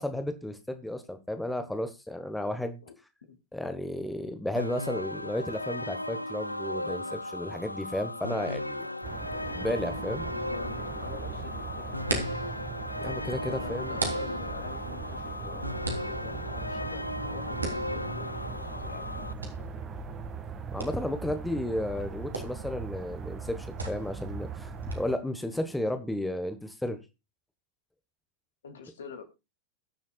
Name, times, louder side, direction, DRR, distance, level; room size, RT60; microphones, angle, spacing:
voice 1, 0.0-2.8 3.5-8.9 9.5-10.3 13.0-14.0 20.7-27.0, left 1 dB, 5° left, 9 dB, 1.4 m, -33 dB
sound 1, 4.6-19.3, left 1 dB, 85° left, 0.5 m, -36 dB
sound 2, 9.0-25.1, right 5 dB, 25° right, 2.0 m, -39 dB
voice 2, 10.3-10.7 11.0-12.3 13.5-19.3 19.6-19.9 28.6-29.2, left 7 dB, 65° left, 7 dB, 2.6 m, -46 dB
sound 3, 11.8-24.9, right 2 dB, 80° right, 3.3 m, -41 dB
21.0 x 7.3 x 2.4 m, 0.26 s
figure-of-eight pair, 90°, 0 cm